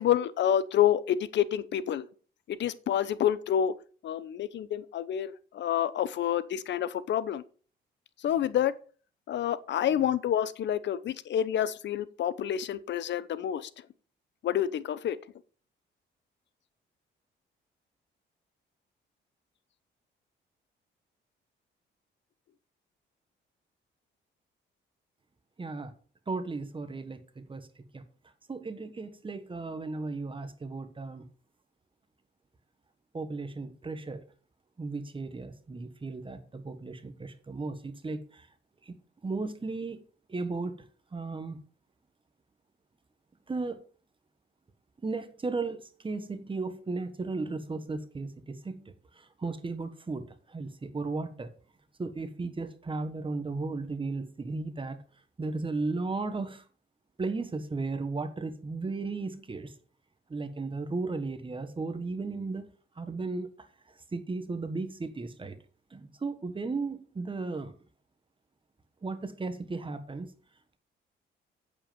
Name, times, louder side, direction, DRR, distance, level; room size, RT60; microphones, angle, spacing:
voice 1, 0.0-2.1 2.5-3.7 4.0-7.4 8.2-8.7 9.3-13.7 14.4-15.2, left 10 dB, 65° left, 0.8 m, -28 dB
voice 2, 25.6-25.9 26.3-27.7 27.9-28.0 28.5-31.3 33.1-34.2 34.8-38.5 38.8-38.9 39.2-40.0 40.3-40.8 41.1-41.6 43.5-43.8 45.0-51.5 52.0-55.0 55.4-56.6 57.2-59.7 60.3-62.7 63.0-63.7 64.1-65.6 65.9-67.7 69.0-70.3, right 3 dB, 25° right, 1.4 m, -35 dB
8.7 x 7.8 x 5.2 m
cardioid pair, 90°, 20 cm